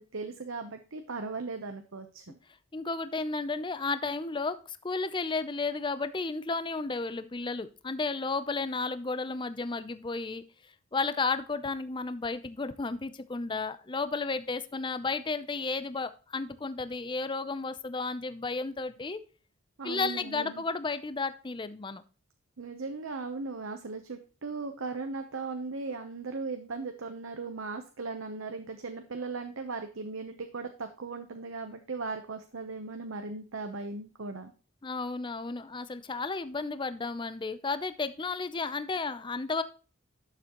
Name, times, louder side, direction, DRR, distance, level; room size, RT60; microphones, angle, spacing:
voice 1, 0.0-2.2 19.8-20.6 22.6-34.5, right 3 dB, 70° right, 6 dB, 0.8 m, -38 dB
voice 2, 2.7-10.4 10.9-19.2 19.8-22.0 34.8-39.6, left 3 dB, 25° left, 12 dB, 0.5 m, -33 dB
12.0 x 6.9 x 3.0 m, 0.36 s
head